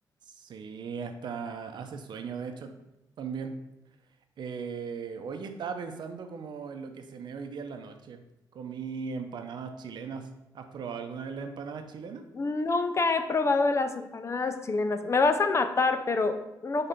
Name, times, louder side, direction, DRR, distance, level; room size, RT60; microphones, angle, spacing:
voice 1, 0.3-2.7 3.2-3.5 4.4-8.2 8.5-10.3 10.5-12.2, right 5 dB, 75° right, 6 dB, 0.7 m, -38 dB
voice 2, 12.3-16.9, left 3 dB, 40° left, 9 dB, 0.6 m, -26 dB
5.3 x 3.8 x 5.7 m, 0.94 s
cardioid pair, 90°, 8 cm